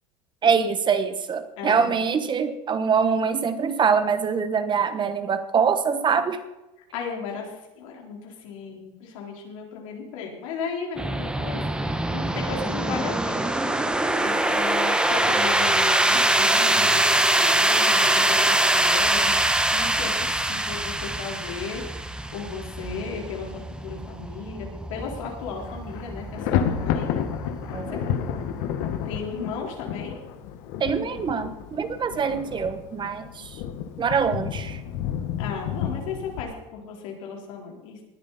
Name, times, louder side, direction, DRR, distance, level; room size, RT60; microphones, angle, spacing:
voice 1, 0.4-6.4 27.7-28.0 30.8-33.6 34.0-34.8, right 6 dB, 30° right, 10 dB, 1.2 m, -24 dB
voice 2, 1.6-1.9 6.9-13.5 14.1-21.8 22.3-27.2 27.9-28.0 29.0-30.2 35.4-38.0, left 5 dB, 85° left, 0 dB, 4.2 m, -35 dB
sound 1, 11.0-29.6, right 1 dB, 5° right, 1.1 m, -24 dB
sound 2, 15.0-21.0, right 4 dB, 90° right, 5.3 m, -44 dB
Thunder, 25.0-25.3 25.6-36.4, left 8 dB, 70° left, 1.5 m, -31 dB
19.5 x 10.0 x 4.2 m, 0.98 s
supercardioid pair, 120°, 16 cm